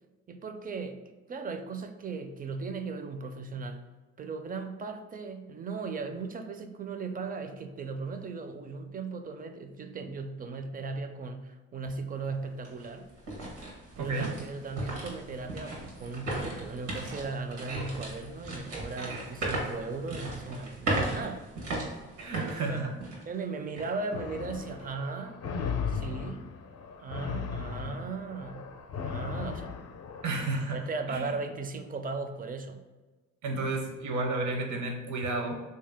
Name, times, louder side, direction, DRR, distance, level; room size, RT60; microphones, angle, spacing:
voice 1, 0.3-3.9 4.2-13.1 14.0-21.5 22.4-22.8 23.3-25.4 25.9-26.5 27.0-29.7 30.7-32.9, right 4 dB, 30° right, 7 dB, 0.4 m, -37 dB
sound 1, 11.8-11.9 12.4-23.4 23.7-23.9 24.5-24.8, right 1 dB, 85° right, 1.2 m, -36 dB
voice 2, 14.0-14.3 22.2-22.9 30.2-31.3 33.4-35.5, right 2 dB, 70° right, 3 dB, 0.8 m, -32 dB
sound 2, 24.1-30.6, left 6 dB, 55° left, 0.5 m, -37 dB
3.4 x 2.8 x 3.4 m, 1.2 s
cardioid pair, 90°, 30 cm